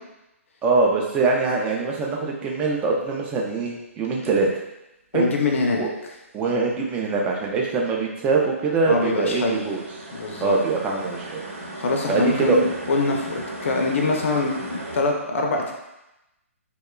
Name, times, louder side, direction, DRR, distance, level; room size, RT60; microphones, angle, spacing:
voice 1, 0.6-4.5 5.1-5.3 5.8-5.9 6.3-9.8 10.4-11.4 12.1-12.6, right 4 dB, 15° right, -1 dB, 0.3 m, -23 dB
sound 1, 4.0-4.3 8.8-15.0, right 1 dB, 75° right, 0.6 m, -36 dB
voice 2, 5.1-5.8 8.8-9.6 10.1-10.5 11.8-15.7, left 3 dB, 60° left, 2 dB, 0.5 m, -24 dB
2.8 x 2.2 x 2.2 m, 0.93 s
figure-of-eight pair, 135°, 8 cm